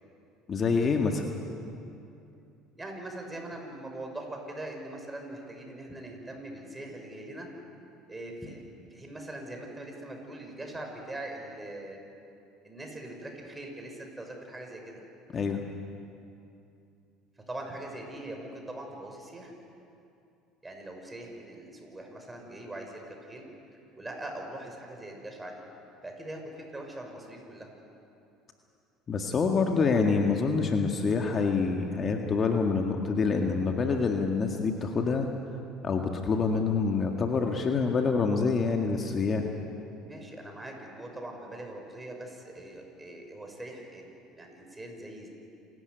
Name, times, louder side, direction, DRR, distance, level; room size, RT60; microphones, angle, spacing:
voice 1, 0.5-1.3 15.3-15.6 29.1-35.3 35.8-39.4, left 4 dB, 40° left, 3 dB, 1.9 m, -26 dB
voice 2, 2.8-7.5 8.1-12.0 12.6-15.0 17.5-19.5 20.6-23.5 23.9-25.6 26.0-27.7 40.0-44.1 44.4-45.3, right 1 dB, 15° right, 2 dB, 6.1 m, -42 dB
28.0 x 13.5 x 9.4 m, 2.7 s
hypercardioid pair, 75°, 0 cm